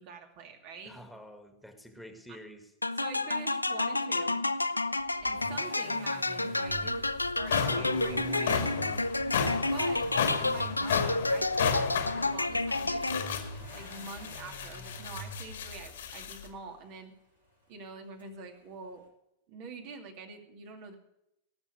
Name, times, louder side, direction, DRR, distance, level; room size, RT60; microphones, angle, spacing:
voice 1, 0.0-0.9 3.0-4.4 5.2-7.1 7.3-8.7 9.5-10.1 10.3-13.3 13.7-17.1 17.7-19.0 19.5-21.0, right 4 dB, 45° right, 5 dB, 2.4 m, -45 dB
voice 2, 0.8-2.7 7.6-9.0, equal, ahead, 5 dB, 2.1 m, -45 dB
sound 1, 2.8-13.5, left 2 dB, 85° left, 0.4 m, -30 dB
Accelerating revving vroom, 5.0-16.9 18.2-18.3, right 1 dB, 80° right, 4.6 m, -47 dB
sound 2, 6.7-6.8 7.2-16.5, left 7 dB, 60° left, 1.8 m, -34 dB
18.0 x 7.1 x 6.5 m, 0.81 s
figure-of-eight pair, 90°, 0 cm